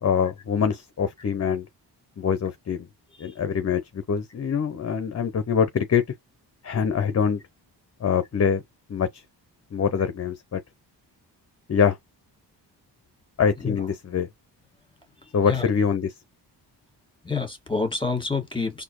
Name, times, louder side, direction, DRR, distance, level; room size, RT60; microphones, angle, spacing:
voice 1, 0.0-1.7 2.2-2.8 3.2-6.0 6.6-7.4 8.0-8.6 8.9-9.2 9.7-10.6 11.7-12.0 13.4-14.3 15.3-16.1, left 7 dB, 35° left, 0.6 m, -24 dB
voice 2, 17.2-18.8, left 4 dB, 10° left, 1.8 m, -28 dB
4.2 x 2.7 x 3.0 m
wide cardioid pair, 105°, 43 cm